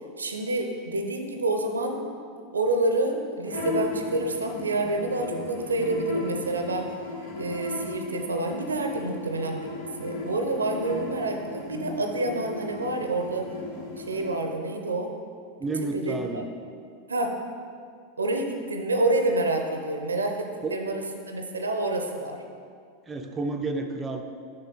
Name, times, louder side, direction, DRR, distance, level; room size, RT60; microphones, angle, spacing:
voice 1, 0.2-2.0 2.5-6.9 7.4-9.7 10.0-13.5 14.0-15.1 15.9-16.4 17.1-17.4 18.2-22.4, right 2 dB, 80° right, 4 dB, 0.6 m, -28 dB
sound 1, 3.4-14.3, left 2 dB, 65° left, 1.3 m, -36 dB
voice 2, 15.6-16.5 20.6-20.8 23.0-24.2, right 3 dB, 20° right, 4 dB, 0.5 m, -30 dB
6.7 x 5.7 x 3.9 m, 2.2 s
figure-of-eight pair, 85°, 0 cm